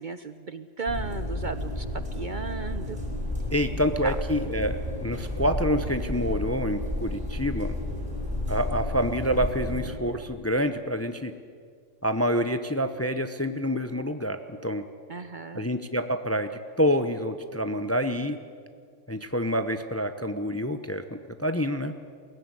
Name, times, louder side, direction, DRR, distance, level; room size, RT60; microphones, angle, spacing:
voice 1, 0.0-1.9 2.1-3.0 4.0-4.2 15.1-15.7, right 4 dB, 45° right, 11 dB, 0.8 m, -35 dB
sound 1, 0.9-9.9, left 1 dB, 5° right, 5.1 m, -32 dB
voice 2, 3.5-7.8 8.5-11.3 12.0-14.8 15.5-18.4 19.1-21.9, equal, 15° left, 9 dB, 0.7 m, -27 dB
22.0 x 16.5 x 9.7 m, 2.1 s
omnidirectional pair, 1.3 m